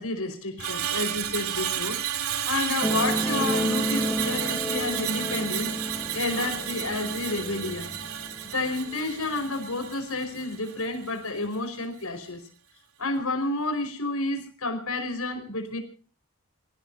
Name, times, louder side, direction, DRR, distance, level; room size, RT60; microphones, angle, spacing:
voice 1, 0.0-2.0 2.5-5.7 6.1-7.9 8.5-12.4 13.0-15.8, left 2 dB, 85° left, 8 dB, 4.9 m, -30 dB
Screech, 0.6-11.0 11.3-11.6, right 10 dB, 90° right, 2.3 m, -32 dB
sound 1, 2.8-9.9 10.7-10.8, equal, 5° left, 1.8 m, -32 dB
27.5 x 17.0 x 2.7 m, 0.39 s
head